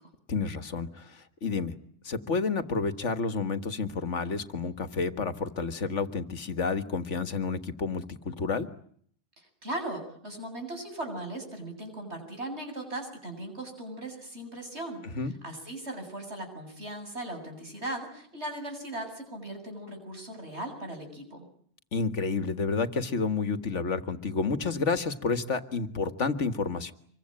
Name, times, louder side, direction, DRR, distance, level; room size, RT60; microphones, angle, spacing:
voice 1, 0.3-1.7 2.0-8.7 15.2-15.3 21.9-26.9, left 4 dB, 80° left, 11 dB, 2.0 m, -30 dB
voice 2, 9.4-15.0 15.4-21.5, right 1 dB, 65° right, 5 dB, 8.5 m, -38 dB
26.5 x 23.5 x 9.0 m, 0.63 s
omnidirectional pair, 1.2 m